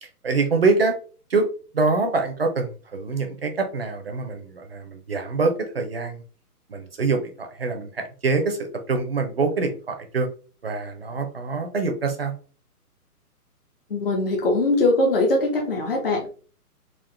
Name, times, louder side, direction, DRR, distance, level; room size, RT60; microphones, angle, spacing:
voice 1, 0.0-0.9 1.3-1.5 1.7-6.2 6.7-10.3 10.6-12.3, right 3 dB, 40° right, 5 dB, 0.6 m, -25 dB
voice 2, 13.9-16.3, left 2 dB, 35° left, 0 dB, 0.8 m, -21 dB
3.9 x 2.4 x 3.3 m, 0.39 s
hypercardioid pair, 170°, 47 cm